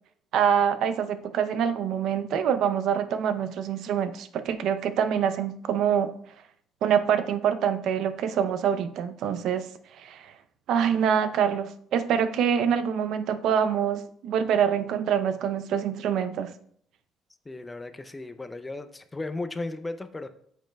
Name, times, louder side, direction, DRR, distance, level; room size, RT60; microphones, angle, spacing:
voice 1, 0.3-6.1 6.8-9.7 10.0-10.3 10.7-16.5, right 8 dB, 65° right, 11 dB, 0.5 m, -25 dB
voice 2, 17.5-20.3, left 2 dB, 15° left, 10 dB, 0.4 m, -35 dB
9.0 x 7.4 x 2.2 m, 0.64 s
cardioid pair, 160°, 0 cm